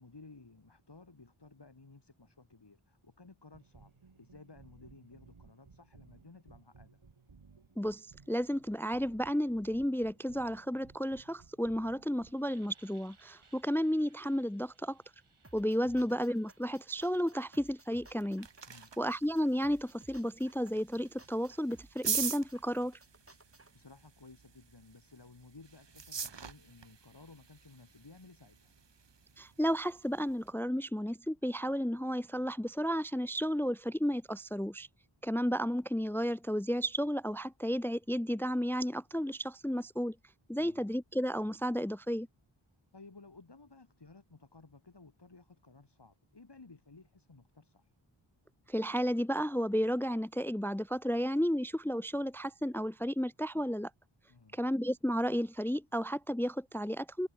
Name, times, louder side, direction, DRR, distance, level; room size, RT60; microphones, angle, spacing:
voice 1, 0.0-7.0 15.9-16.2 18.7-19.0 23.7-28.7 40.5-40.8 42.9-47.9 54.3-54.6, left 3 dB, 55° left, 7.0 m, -56 dB
sound 1, 3.5-20.3, right 5 dB, 85° right, 5.5 m, -62 dB
voice 2, 7.8-15.0 15.5-18.5 19.0-22.9 29.4-34.9 35.2-40.2 40.5-42.3 48.7-53.9 54.5-57.3, equal, 5° left, 0.6 m, -32 dB
sound 2, 15.4-23.7, right 2 dB, 30° right, 3.6 m, -58 dB
sound 3, 18.0-30.5, right 6 dB, 60° right, 1.6 m, -43 dB
cardioid pair, 40°, 48 cm